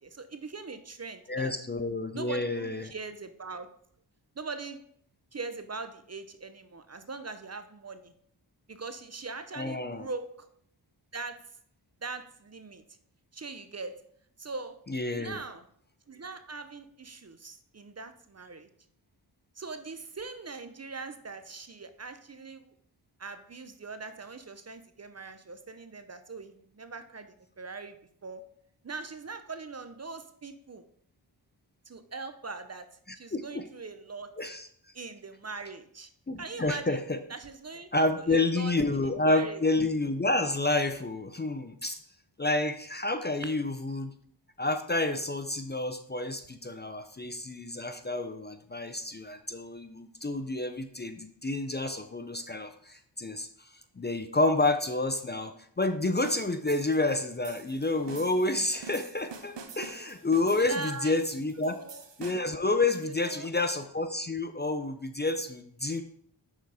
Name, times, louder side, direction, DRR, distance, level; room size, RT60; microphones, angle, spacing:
voice 1, 0.0-1.5 2.1-3.7 4.4-4.8 5.3-8.1 8.7-10.5 11.1-11.6 12.0-12.8 13.3-14.0 14.4-14.8 15.1-15.7 16.1-18.7 19.6-22.7 23.2-28.0 28.2-28.5 28.8-30.8 31.9-32.9 33.1-34.3 34.9-36.1 36.4-37.0 37.3-39.6 43.4-43.5 60.6-61.2 61.7-62.0 63.0-63.5, right 4 dB, 35° right, 10 dB, 0.6 m, -41 dB
voice 2, 1.3-2.9 9.5-10.1 14.9-15.4 33.3-33.7 34.4-34.7 36.3-37.2 37.9-42.0 42.4-44.1 44.6-53.7 54.0-61.8 62.2-66.0, left 2 dB, 25° left, 8 dB, 0.5 m, -29 dB
sound 1, 56.3-62.6, right 5 dB, 65° right, 0.9 m, -47 dB
6.2 x 4.1 x 4.8 m, 0.64 s
cardioid pair, 45°, 46 cm